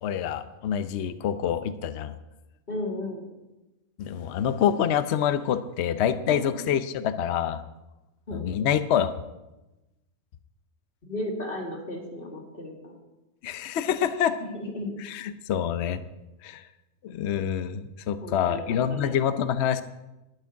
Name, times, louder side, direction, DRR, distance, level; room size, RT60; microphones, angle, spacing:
voice 1, 0.0-2.1 4.0-7.6 8.3-9.1 13.4-14.4 15.0-16.0 16.4-16.6 17.0-19.8, left 9 dB, 60° left, 12 dB, 0.9 m, -26 dB
voice 2, 2.7-3.2 6.3-6.4 8.3-8.5 11.0-13.0 14.4-14.9 18.2-19.1, left 1 dB, 40° left, 1 dB, 2.6 m, -34 dB
13.0 x 6.1 x 9.5 m, 1.0 s
omnidirectional pair, 1.4 m